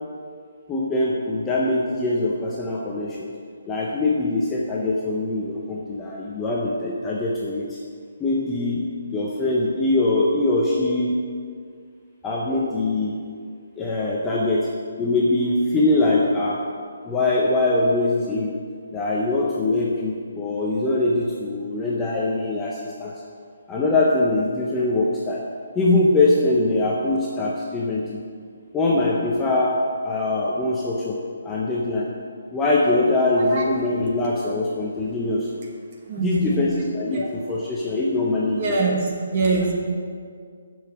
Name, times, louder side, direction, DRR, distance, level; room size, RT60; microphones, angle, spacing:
voice 1, 0.7-3.3 3.7-7.8 8.2-8.8 9.1-11.3 12.2-13.2 13.8-14.7 15.0-16.6 17.0-18.5 18.9-23.1 23.7-25.4 25.8-28.2 28.7-32.1 32.5-35.5 36.2-38.8 39.5-39.7, left 2 dB, 5° left, -5 dB, 0.5 m, -22 dB
voice 2, 36.1-36.6 37.1-37.3 38.6-39.7, right 3 dB, 25° right, -1 dB, 1.2 m, -24 dB
7.9 x 6.5 x 7.4 m, 2.1 s
hypercardioid pair, 180°, 0 cm